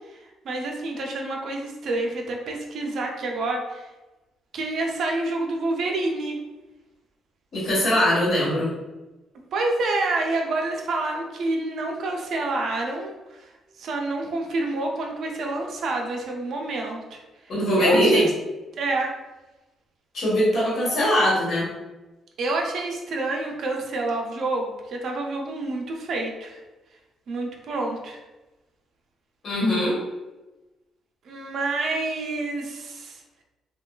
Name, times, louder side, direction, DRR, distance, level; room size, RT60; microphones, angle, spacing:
voice 1, 0.4-3.9 4.5-6.4 9.5-13.5 13.8-17.2 17.7-18.3 18.8-19.1 22.4-26.6 27.3-28.2 31.3-33.2, right 2 dB, 65° right, 1 dB, 0.5 m, -28 dB
voice 2, 7.5-8.7 17.5-18.2 20.1-21.7 29.4-30.0, equal, 60° left, -8 dB, 1.2 m, -21 dB
3.0 x 2.2 x 2.3 m, 1.1 s
cardioid pair, 90°, 0 cm